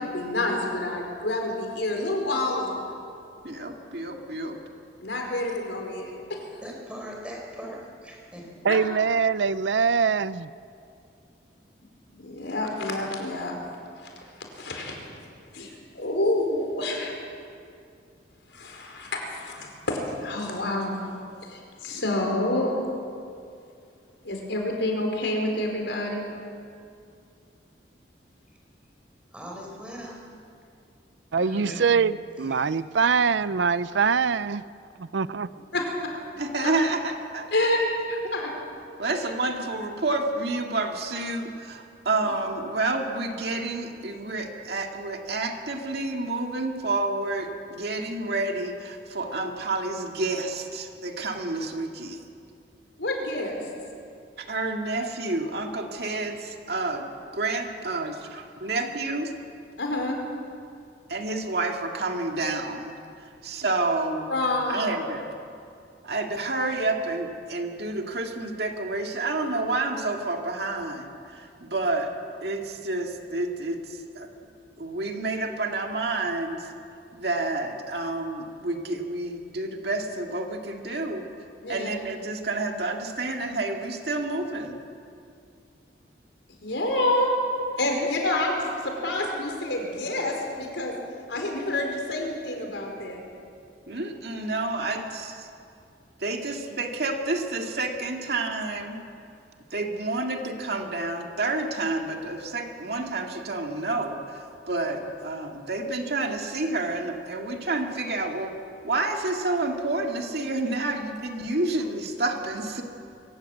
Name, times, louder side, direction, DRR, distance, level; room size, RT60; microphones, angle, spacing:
voice 1, 0.1-2.8 5.0-6.6 8.7-8.8 12.2-13.7 14.0-15.0 15.5-17.2 18.5-21.0 21.4-22.7 24.2-26.3 31.4-31.8 35.7-35.8 36.6-36.7 37.5-37.8 38.1-38.5 42.1-42.3 53.0-53.7 59.8-60.2 64.3-64.9 81.6-81.9 86.6-87.3 87.8-90.9 91.3-93.2, left 1 dB, 80° left, 4.7 m, -28 dB
voice 2, 3.4-4.6 36.4-37.5 39.0-52.2 54.4-59.3 61.1-63.0 63.4-64.3 64.7-65.3 66.0-72.1 72.4-73.8 74.2-74.3 74.8-76.7 77.1-81.3 81.7-84.8 87.8-88.1 93.9-95.5 96.2-99.0 99.7-108.5 108.8-112.8, right 2 dB, 60° right, 2.3 m, -29 dB
voice 3, 6.6-8.6 29.3-30.2 31.4-31.8 32.4-32.8 35.5-35.8 96.5-96.6, equal, 5° right, 4.9 m, -41 dB
voice 4, 8.6-10.5 31.3-34.6 35.0-35.5, right 5 dB, 80° right, 0.5 m, -23 dB
24.5 x 17.5 x 8.0 m
head